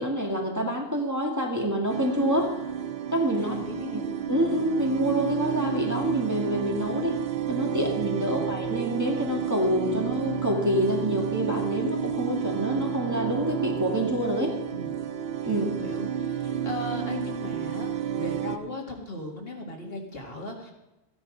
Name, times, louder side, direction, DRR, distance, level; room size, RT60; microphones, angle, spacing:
voice 1, 0.0-2.5 3.1-3.6 3.9-7.2 7.5-14.5 15.5-15.7, equal, 15° right, -1 dB, 1.9 m, -27 dB
sound 1, 1.9-18.6, right 8 dB, 70° right, 1.0 m, -31 dB
voice 2, 3.4-4.0 14.7-15.0 15.4-20.7, left 2 dB, 65° left, 1 dB, 2.2 m, -38 dB
14.5 x 10.0 x 5.1 m, 0.96 s
omnidirectional pair, 1.1 m